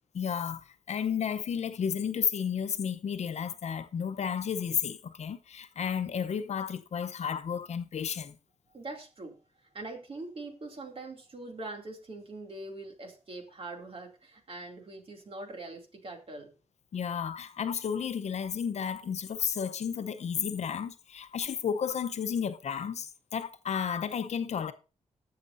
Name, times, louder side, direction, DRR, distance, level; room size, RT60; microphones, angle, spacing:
voice 1, 0.1-8.4 16.9-24.7, left 7 dB, 70° left, 0.8 m, -32 dB
voice 2, 8.7-9.4 9.7-16.5, right 2 dB, 50° right, 2.7 m, -43 dB
19.0 x 6.7 x 2.6 m
cardioid pair, 75°, 12 cm